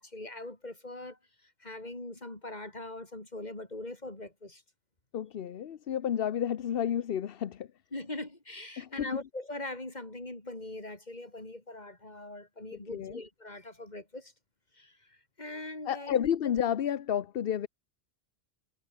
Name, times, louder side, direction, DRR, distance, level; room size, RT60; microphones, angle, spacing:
voice 1, 0.0-4.6 7.9-14.3 14.7-16.2, left 2 dB, 40° left, 3.9 m, -42 dB
voice 2, 5.1-7.7 8.8-9.1 12.9-13.2 15.9-17.7, left 9 dB, 60° left, 0.9 m, -31 dB
omnidirectional pair, 1.2 m